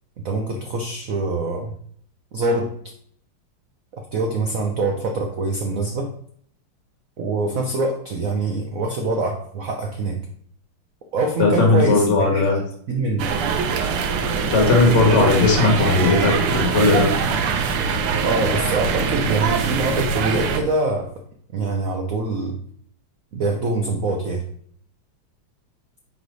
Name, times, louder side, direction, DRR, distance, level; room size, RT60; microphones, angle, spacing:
voice 1, 0.2-1.7 2.3-2.7 3.9-6.1 7.2-10.2 11.1-12.4 12.9-13.3 18.2-21.1 21.5-22.6 23.3-24.4, right 2 dB, 70° right, 3 dB, 0.8 m, -24 dB
voice 2, 11.4-12.6 14.4-17.1, left 3 dB, 35° left, 1 dB, 1.6 m, -17 dB
sound 1, 13.2-20.6, right 5 dB, 90° right, 1.7 m, -22 dB
9.3 x 3.3 x 4.0 m, 0.63 s
omnidirectional pair, 2.4 m